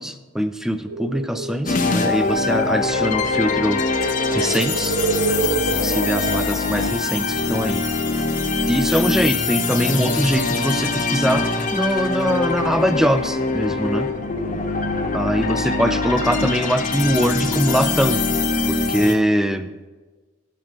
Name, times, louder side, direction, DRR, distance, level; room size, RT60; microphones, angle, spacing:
voice 1, 0.0-5.0 5.7-7.8 8.7-14.1 15.1-18.2 18.7-19.7, equal, ahead, 10 dB, 0.3 m, -22 dB
sound 1, 0.9-7.3, right 4 dB, 75° right, 1.0 m, -28 dB
sound 2, 1.7-19.1, left 3 dB, 35° left, 0.7 m, -23 dB
12.0 x 5.0 x 6.0 m, 1.3 s
head